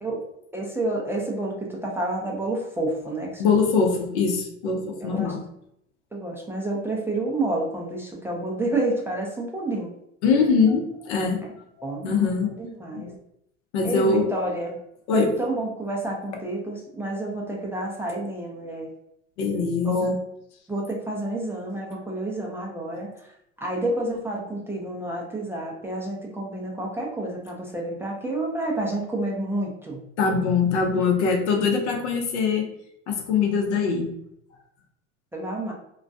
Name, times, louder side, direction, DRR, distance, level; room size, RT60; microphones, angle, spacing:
voice 1, 0.5-3.6 5.0-5.3 6.1-9.9 11.4-11.5 11.8-12.2 12.6-13.1 13.8-14.7 15.1-18.9 19.8-20.2 20.7-23.3 23.6-30.0 35.3-35.7, right 2 dB, 5° right, -3 dB, 0.4 m, -29 dB
voice 2, 3.4-5.4 10.2-11.4 11.8-12.5 12.9-13.1 13.7-14.3 15.1-15.3 19.4-20.1 30.2-32.7 33.1-34.1, left 5 dB, 75° left, 2 dB, 0.7 m, -22 dB
2.3 x 2.2 x 2.6 m, 0.75 s
hypercardioid pair, 85°, 35 cm